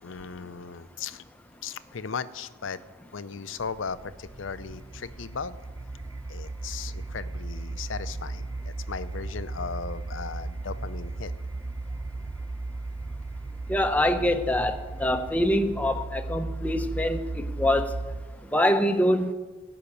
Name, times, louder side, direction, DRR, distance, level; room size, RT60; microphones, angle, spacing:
voice 1, 0.0-1.2 1.6-2.8 3.1-5.6 6.3-11.3, left 5 dB, 75° left, 14 dB, 0.6 m, -37 dB
sound 1, 3.6-18.5, right 2 dB, 20° right, 0.3 m, -36 dB
voice 2, 13.7-17.9 18.5-19.3, left 1 dB, 10° left, 7 dB, 0.7 m, -24 dB
17.5 x 5.8 x 8.6 m, 1.3 s
head